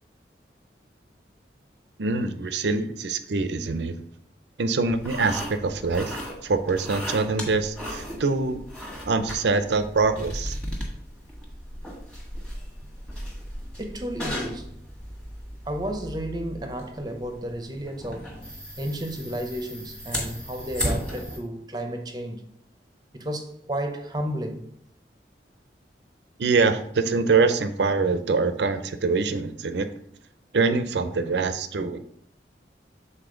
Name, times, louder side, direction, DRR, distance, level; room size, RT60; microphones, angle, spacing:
voice 1, 2.0-3.9 4.6-8.6 9.1-10.6 26.4-29.9 30.5-32.0, right 4 dB, 75° right, 0.6 m, -24 dB
sound 1, 4.9-21.4, equal, 5° left, 1.3 m, -36 dB
voice 2, 13.8-14.7 15.7-18.4 18.8-22.4 23.1-24.7, right 1 dB, 25° right, 0.7 m, -32 dB
7.0 x 4.1 x 3.8 m
head